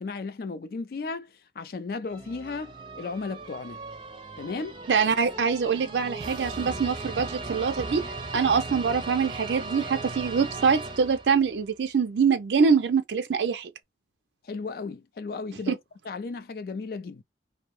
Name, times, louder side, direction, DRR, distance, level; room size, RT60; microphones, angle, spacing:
voice 1, 0.0-3.8 4.4-4.8 14.4-15.8 16.0-17.2, left 4 dB, 55° left, 0.4 m, -35 dB
sound 1, 2.1-11.6, right 3 dB, 25° right, 0.5 m, -38 dB
voice 2, 4.9-8.0 8.3-13.7 15.7-15.8, right 6 dB, 80° right, 0.4 m, -24 dB
2.6 x 2.0 x 3.0 m
head